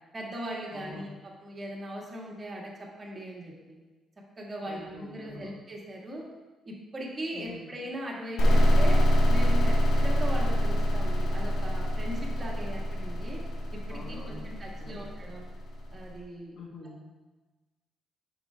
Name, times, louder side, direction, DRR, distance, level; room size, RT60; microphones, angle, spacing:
voice 1, 0.1-1.1 1.4-3.8 4.4-6.2 6.7-9.0 9.3-13.4 13.7-15.4 15.9-16.5, right 1 dB, 30° right, -3 dB, 1.8 m, -39 dB
voice 2, 0.7-1.1 4.6-5.6 7.3-7.7 13.9-15.1 16.5-17.0, left 3 dB, 45° left, 0 dB, 1.2 m, -46 dB
sound 1, 8.4-15.9, equal, 75° left, 1.4 m, -25 dB
9.2 x 6.0 x 2.4 m, 1.2 s
cardioid pair, 90°, 0 cm